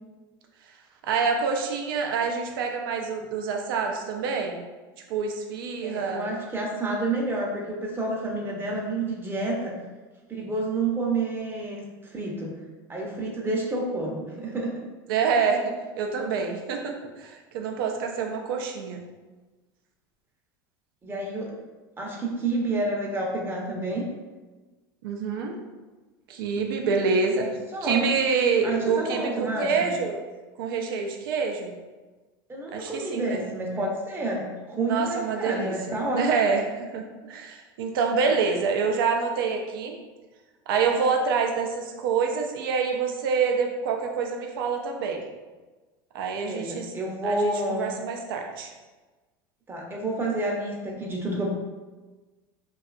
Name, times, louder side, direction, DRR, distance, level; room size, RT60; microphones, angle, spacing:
voice 1, 1.0-4.6 5.1-6.3 15.1-15.6 16.0-19.0 25.0-25.6 26.3-27.5 27.8-30.2 30.6-31.7 32.7-33.4 34.9-35.7 36.1-39.9 40.7-45.2 46.1-46.9 47.2-48.7, right 5 dB, 80° right, 3 dB, 0.4 m, -26 dB
voice 2, 5.8-9.8 10.3-12.6 12.9-14.8 21.0-21.6 22.0-24.0 27.3-28.0 28.6-29.9 32.5-36.2 46.3-48.0 49.7-51.5, right 2 dB, 20° right, -1 dB, 0.6 m, -29 dB
2.7 x 2.3 x 2.3 m, 1.2 s
hypercardioid pair, 95°, 12 cm